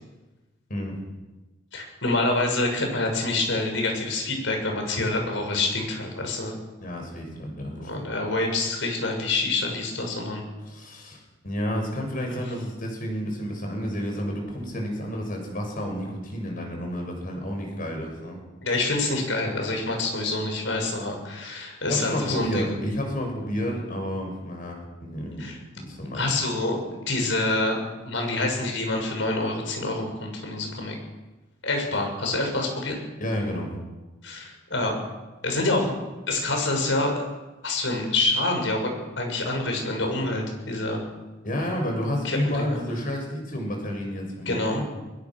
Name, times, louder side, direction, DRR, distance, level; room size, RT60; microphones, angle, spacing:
voice 1, 1.7-6.6 7.8-10.4 12.3-12.4 18.6-22.7 25.4-25.6 26.1-27.8 28.0-30.9 31.6-33.0 34.2-35.0 35.4-35.9 36.3-37.1 37.6-38.9 39.2-41.0 42.2-42.8 44.4-44.8, left 2 dB, 75° left, 3 dB, 6.7 m, -26 dB
voice 2, 6.8-8.2 10.6-18.4 21.9-25.5 25.7-26.4 33.2-33.7 41.4-44.9, equal, 45° left, 2 dB, 7.1 m, -30 dB
23.0 x 21.0 x 6.4 m, 1.1 s
head